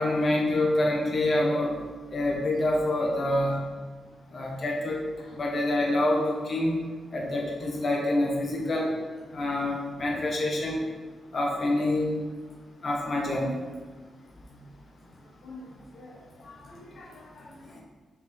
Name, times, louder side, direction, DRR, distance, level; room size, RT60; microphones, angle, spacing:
voice 1, 0.0-1.7 2.1-3.6 4.3-5.0 5.4-6.8 7.1-8.9 9.3-10.8 11.3-12.1 12.8-13.6, left 1 dB, 45° left, -1 dB, 1.3 m, -26 dB
voice 2, 5.2-5.5 8.5-9.5 14.5-14.6 15.4-17.8, left 2 dB, 70° left, -3 dB, 0.9 m, -48 dB
6.1 x 4.9 x 3.5 m, 1.4 s
cardioid pair, 120°, 0 cm